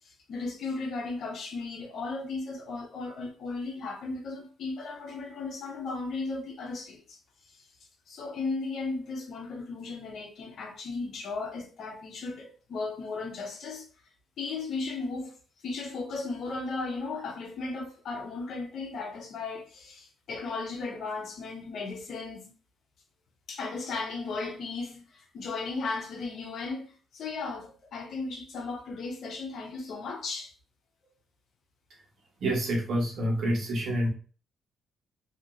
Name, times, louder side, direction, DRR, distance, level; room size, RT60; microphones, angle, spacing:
voice 1, 0.0-7.2 8.1-13.9 14.4-15.3 15.6-22.5 23.5-30.5, left 3 dB, 65° left, 0.9 m, -36 dB
voice 2, 32.4-34.1, right 1 dB, 65° right, 1.2 m, -27 dB
2.9 x 2.9 x 2.6 m
cardioid pair, 90°, 0 cm